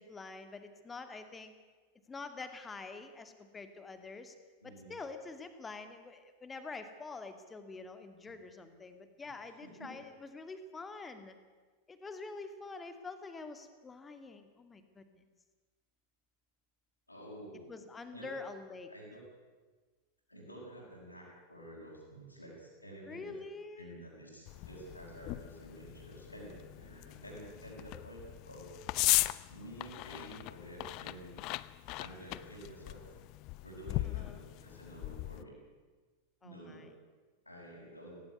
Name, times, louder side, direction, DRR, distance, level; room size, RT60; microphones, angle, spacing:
voice 1, 0.0-1.5 2.1-4.3 4.6-11.4 11.9-15.2 17.7-18.9 23.1-24.0 34.0-34.4 36.4-36.9, left 4 dB, 15° left, 9 dB, 2.3 m, -46 dB
voice 2, 4.6-5.0 8.2-8.3 9.8-9.9 17.1-17.7 18.1-18.4 18.9-19.2 20.3-23.4 23.7-28.7 29.5-31.3 32.0-33.0 33.6-35.5 36.4-36.9 37.4-38.2, right 1 dB, 90° left, -9 dB, 6.6 m, -50 dB
sound 1, 24.5-35.4, left 21 dB, 40° left, 0.6 m, -38 dB
17.5 x 17.5 x 9.6 m, 1.4 s
figure-of-eight pair, 90°, 0 cm